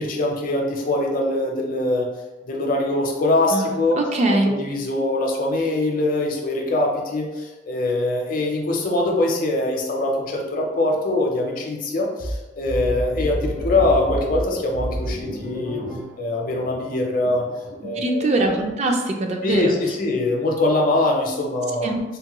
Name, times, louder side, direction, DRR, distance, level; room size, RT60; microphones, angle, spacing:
voice 1, 0.0-2.1 2.4-4.0 4.4-15.8 16.2-17.5 17.8-18.3 19.4-21.9, left 2 dB, 50° left, 1 dB, 0.6 m, -23 dB
voice 2, 3.5-4.5 17.8-19.7 21.8-22.0, right 2 dB, 40° right, 3 dB, 0.4 m, -22 dB
sound 1, 12.2-17.8, equal, 55° right, 0.8 m, -30 dB
3.5 x 2.1 x 2.9 m, 1.1 s
head